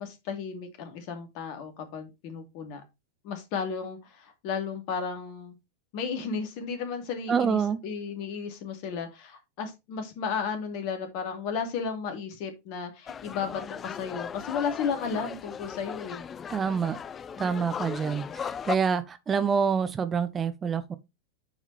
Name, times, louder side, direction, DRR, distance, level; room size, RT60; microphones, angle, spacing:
voice 1, 0.0-2.8 3.2-5.6 5.9-16.2, left 6 dB, 45° left, 2.5 m, -34 dB
voice 2, 7.3-7.8 16.5-17.0 17.4-20.9, right 6 dB, 20° right, 0.8 m, -27 dB
sound 1, 13.1-18.8, left 7 dB, 20° left, 0.4 m, -37 dB
9.4 x 5.0 x 3.3 m
figure-of-eight pair, 90°, 0 cm